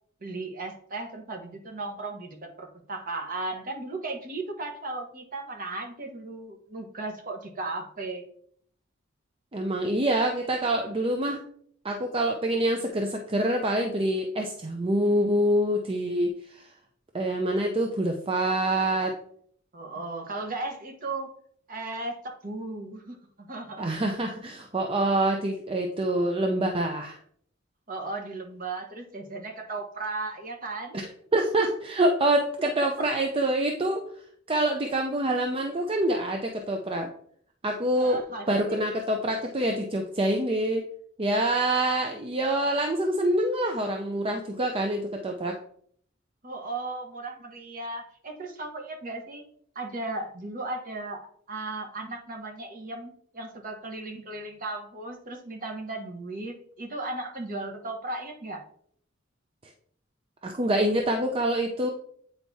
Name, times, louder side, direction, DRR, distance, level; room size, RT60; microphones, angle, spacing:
voice 1, 0.2-8.2 19.7-21.3 21.7-23.9 27.9-31.0 32.8-32.9 37.9-38.8 46.4-49.5 49.7-58.6, right 2 dB, 45° right, 3 dB, 1.1 m, -36 dB
voice 2, 9.5-11.4 11.8-16.7 17.1-19.1 23.8-27.2 30.9-34.0 34.5-37.1 37.6-38.2 38.5-40.8 41.2-45.6 60.4-61.9, right 1 dB, 30° right, 3 dB, 0.6 m, -26 dB
8.8 x 4.6 x 2.7 m, 0.63 s
head